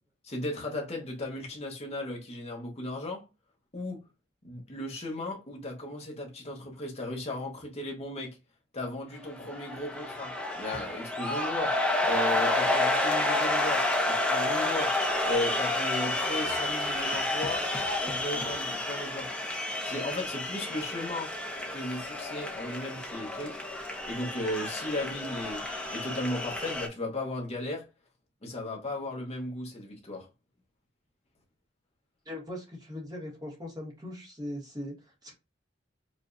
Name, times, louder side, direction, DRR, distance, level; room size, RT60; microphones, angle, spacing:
voice 1, 0.3-3.2 3.7-4.0 4.4-8.4 8.7-15.0 15.2-17.7 18.0-19.3 19.8-21.3 21.7-23.6 24.0-25.6 25.9-27.8 28.4-30.3, left 1 dB, 35° left, 1.1 m, -36 dB
sound 1, 9.3-26.9, left 2 dB, 5° left, 0.8 m, -30 dB
voice 2, 32.2-35.3, left 1 dB, 20° right, 1.5 m, -40 dB
5.1 x 2.7 x 2.6 m
head